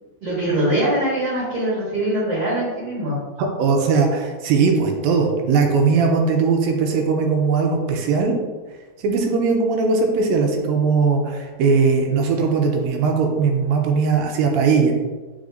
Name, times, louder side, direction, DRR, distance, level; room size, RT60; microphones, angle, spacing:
voice 1, 0.2-3.2, right 1 dB, 55° right, -7 dB, 2.0 m, -22 dB
voice 2, 3.4-8.3 9.0-14.9, right 5 dB, 80° right, 2 dB, 2.4 m, -19 dB
8.4 x 4.8 x 2.6 m, 1.3 s
omnidirectional pair, 4.3 m